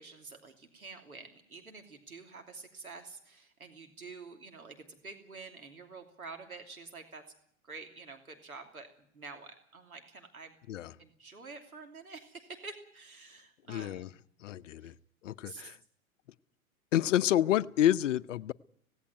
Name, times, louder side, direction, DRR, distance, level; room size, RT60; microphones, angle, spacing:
voice 1, 0.0-7.2 7.6-10.6 11.0-14.2 14.8-14.9 15.4-15.8, right 4 dB, 90° right, 3.0 m, -48 dB
voice 2, 13.7-14.1 14.4-14.9 15.2-15.8 16.9-18.5, left 12 dB, 60° left, 0.8 m, -28 dB
17.5 x 17.0 x 9.3 m
hypercardioid pair, 110°, 42 cm